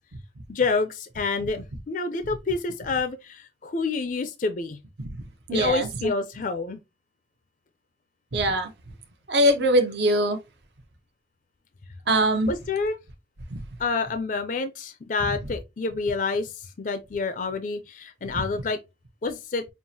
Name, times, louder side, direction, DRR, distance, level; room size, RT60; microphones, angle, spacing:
voice 1, 0.5-4.8 5.5-6.8 12.5-13.0 13.8-18.8 19.2-19.6, left 4 dB, 45° left, 0.4 m, -28 dB
voice 2, 5.5-5.9 8.3-8.7 9.3-10.4 12.1-12.5 13.5-13.6, right 1 dB, 65° right, 0.7 m, -21 dB
5.5 x 2.5 x 2.7 m
head